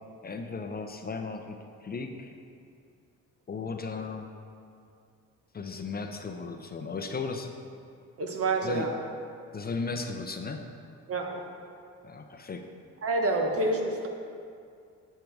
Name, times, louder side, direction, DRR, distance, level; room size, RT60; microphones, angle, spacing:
voice 1, 0.2-2.3 3.5-4.3 5.5-7.5 8.6-8.9 9.5-10.7 12.0-12.7, left 4 dB, 30° left, 5 dB, 0.6 m, -36 dB
voice 2, 8.2-8.9 11.1-11.4 13.0-14.1, right 2 dB, 50° right, 2 dB, 1.3 m, -28 dB
8.7 x 6.6 x 4.6 m, 2.4 s
cardioid pair, 90°, 30 cm